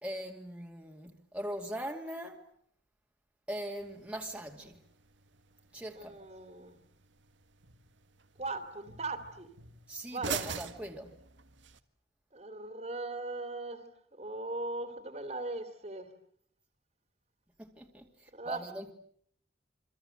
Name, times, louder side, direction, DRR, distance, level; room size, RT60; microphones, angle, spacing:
voice 1, 0.0-2.4 3.5-4.8 5.7-6.2 9.9-11.1 17.6-18.9, equal, 5° right, 2.4 m, -41 dB
sound 1, 3.8-11.8, right 6 dB, 85° right, 1.8 m, -45 dB
voice 2, 5.9-6.8 8.4-9.5 10.1-10.4 12.3-13.9 14.1-16.1 18.3-18.6, right 2 dB, 35° right, 2.8 m, -39 dB
28.0 x 24.5 x 7.9 m
head